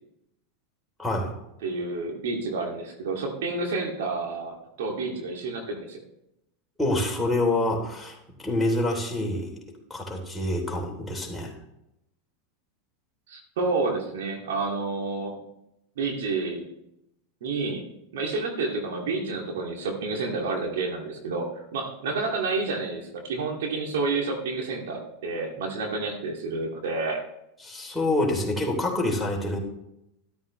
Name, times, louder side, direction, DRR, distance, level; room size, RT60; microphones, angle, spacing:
voice 1, 1.0-1.3 6.8-9.6 9.9-11.5 27.6-29.6, left 1 dB, 5° left, -1 dB, 3.2 m, -27 dB
voice 2, 1.6-6.0 13.3-15.4 16.0-16.7 17.4-17.9 18.1-27.2, right 3 dB, 70° right, 1 dB, 2.3 m, -29 dB
13.0 x 12.0 x 3.2 m, 0.83 s
hypercardioid pair, 95°, 0 cm